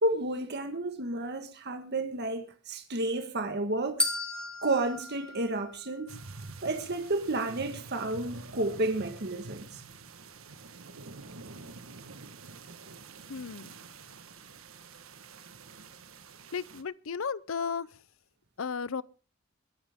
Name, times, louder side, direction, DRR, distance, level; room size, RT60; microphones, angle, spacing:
voice 1, 0.0-4.1 4.6-6.2 6.6-9.8, right 2 dB, 55° right, 1.6 m, -31 dB
sound 1, 4.0-6.2, left 2 dB, 5° left, 2.0 m, -34 dB
sound 2, 6.1-16.8, right 3 dB, 85° right, 1.5 m, -47 dB
voice 2, 13.3-13.7 16.5-17.9 18.6-19.0, left 6 dB, 75° left, 0.6 m, -34 dB
22.0 x 11.0 x 3.7 m
head